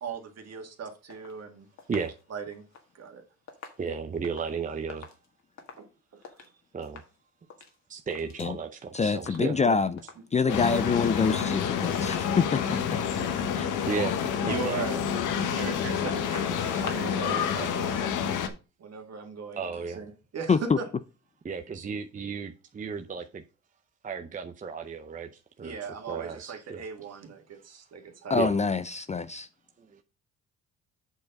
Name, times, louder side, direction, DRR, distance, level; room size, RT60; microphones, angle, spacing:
voice 1, 0.0-1.7 2.3-2.6 2.9-3.2 5.8-5.9 6.1-6.5 10.4-10.6 14.4-15.0 15.5-18.2 18.8-20.9 25.6-28.5, right 5 dB, 55° right, 1.9 m, -38 dB
sound 1, 1.1-6.5 6.8-7.2 7.4-8.6 8.8-9.7 10.0-10.3 10.6-11.6 11.9-17.3 17.6-17.7, left 5 dB, 65° left, 1.7 m, -47 dB
voice 2, 3.8-5.1 6.7-7.0 7.9-9.6 11.8-12.4 13.9-14.1 14.5-15.0 19.5-20.0 21.4-23.4 24.0-25.3 25.6-25.8 26.1-26.8 28.4-28.5 29.9-30.0, right 5 dB, 25° right, 0.6 m, -34 dB
voice 3, 8.9-10.0 10.3-12.6 13.6-13.7 20.5-20.8 28.3-29.5, left 5 dB, 25° left, 0.4 m, -25 dB
sound 2, 10.5-18.5, left 7 dB, 85° left, 1.1 m, -28 dB
7.9 x 4.5 x 5.3 m
cardioid pair, 90°, 30 cm